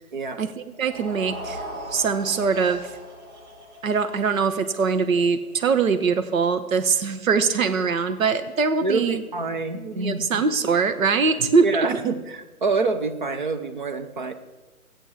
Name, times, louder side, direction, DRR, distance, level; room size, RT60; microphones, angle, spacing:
voice 1, 0.4-1.6 1.9-3.0 3.8-9.2 9.7-11.7, right 5 dB, 65° right, 10 dB, 1.0 m, -22 dB
sound 1, 0.7-7.0, right 1 dB, 50° right, 2.5 m, -40 dB
voice 2, 8.8-10.4 11.6-14.3, right 3 dB, 35° right, 7 dB, 0.7 m, -27 dB
13.5 x 8.8 x 4.8 m, 1.2 s
figure-of-eight pair, 140°, 43 cm